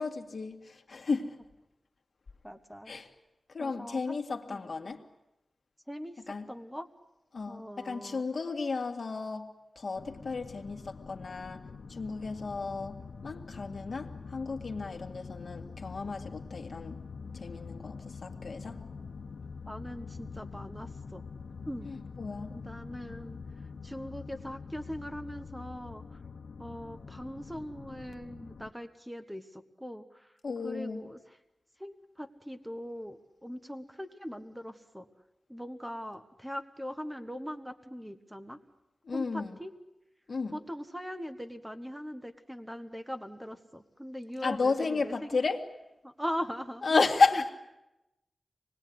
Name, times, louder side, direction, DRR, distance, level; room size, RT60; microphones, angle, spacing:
voice 1, 0.0-1.4 2.9-3.1 3.5-5.0 6.3-6.5 7.3-9.5 9.8-17.0 17.3-18.8 21.8-22.6 30.4-31.0 39.0-39.6 40.3-40.6 44.4-45.6 46.8-47.5, left 4 dB, 55° left, 4 dB, 1.9 m, -32 dB
voice 2, 2.4-2.9 3.6-4.1 4.5-4.6 5.9-6.9 7.5-8.2 19.7-21.2 21.7-21.9 22.5-23.4 23.8-26.2 26.6-30.3 30.6-31.4 31.8-33.2 33.4-35.1 35.5-38.6 39.1-39.7 40.5-45.3 46.0-47.5, equal, 5° right, 8 dB, 1.4 m, -41 dB
sound 1, 9.9-28.7, left 5 dB, 80° left, 1.1 m, -45 dB
26.5 x 20.0 x 9.5 m, 0.93 s
wide cardioid pair, 125°, 0 cm